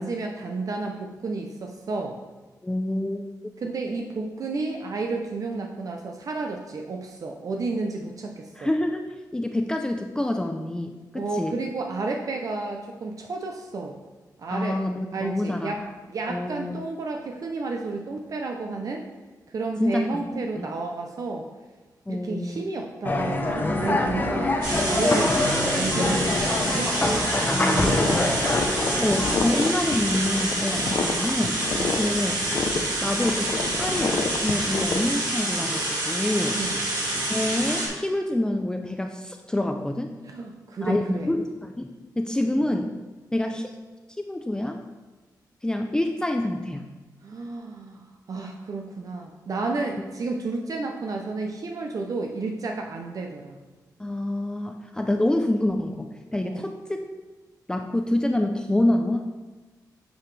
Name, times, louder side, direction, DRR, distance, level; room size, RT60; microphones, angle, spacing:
voice 1, 0.0-2.2 3.6-8.7 11.1-14.0 14.4-14.8 15.1-15.8 16.1-19.0 19.5-21.5 22.1-26.9 27.7-28.2 31.8-32.0 36.5-36.8 40.2-41.3 47.2-48.0 48.3-53.6 56.4-56.6, right 3 dB, 55° right, 2 dB, 0.6 m, -31 dB
voice 2, 2.6-3.2 8.6-9.1 9.3-11.6 14.5-15.7 16.3-16.8 19.8-20.7 22.1-22.6 27.5-28.0 29.0-31.6 31.9-32.4 33.0-36.6 37.3-40.1 40.8-41.9 42.2-43.0 43.3-43.7 44.2-44.8 45.6-46.8 54.0-57.0 57.7-59.3, left 1 dB, 10° left, 4 dB, 0.4 m, -27 dB
sound 1, 23.0-29.3, left 2 dB, 25° left, 0.8 m, -24 dB
sound 2, 24.6-37.9, right 1 dB, 70° right, 2.3 m, -27 dB
sound 3, 27.8-35.0, left 4 dB, 55° left, 0.6 m, -29 dB
9.0 x 4.9 x 3.3 m, 1.2 s
wide cardioid pair, 100°, 7 cm